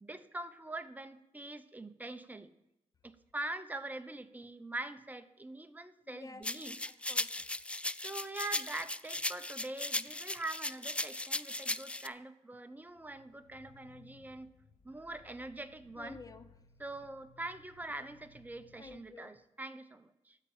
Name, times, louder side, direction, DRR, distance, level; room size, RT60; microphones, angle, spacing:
voice 1, 0.0-2.5 3.0-6.8 8.0-14.5 14.8-16.2 16.8-20.4, right 2 dB, 15° right, 9 dB, 0.8 m, -43 dB
voice 2, 6.1-6.5 6.8-7.6 16.0-16.5 18.8-19.3, left 3 dB, 30° left, 12 dB, 0.7 m, -51 dB
sound 1, 6.4-12.1, left 2 dB, 10° left, 0.3 m, -37 dB
sound 2, 12.9-19.0, left 4 dB, 65° left, 1.2 m, -62 dB
13.0 x 4.4 x 8.5 m, 0.88 s
cardioid pair, 105°, 13 cm